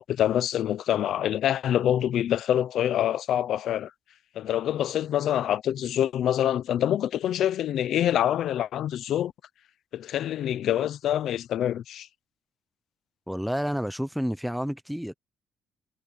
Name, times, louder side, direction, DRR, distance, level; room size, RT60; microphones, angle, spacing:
voice 1, 0.0-3.9 4.4-9.3 9.9-12.1, left 11 dB, 70° left, 0.7 m, -26 dB
voice 2, 13.3-15.1, equal, ahead, 0.8 m, -29 dB
cardioid pair, 130°, 0 cm